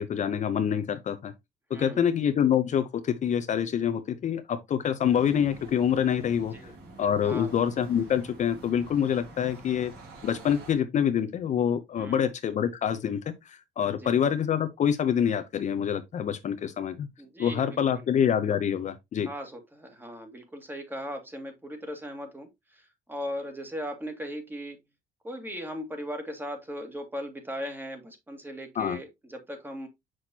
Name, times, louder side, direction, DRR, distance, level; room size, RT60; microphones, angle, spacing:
voice 1, 0.0-1.3 1.7-6.5 7.0-9.9 10.2-17.1 17.4-19.3 28.8-29.0, left 8 dB, 45° left, 0.7 m, -26 dB
voice 2, 1.7-2.1 6.5-6.7 7.2-7.6 11.9-12.3 13.9-14.2 17.2-18.1 19.3-24.8 25.2-29.9, equal, 10° right, 2.0 m, -38 dB
sound 1, 5.0-10.7, right 2 dB, 75° right, 3.0 m, -47 dB
6.3 x 6.0 x 2.8 m
cardioid pair, 110°, 17 cm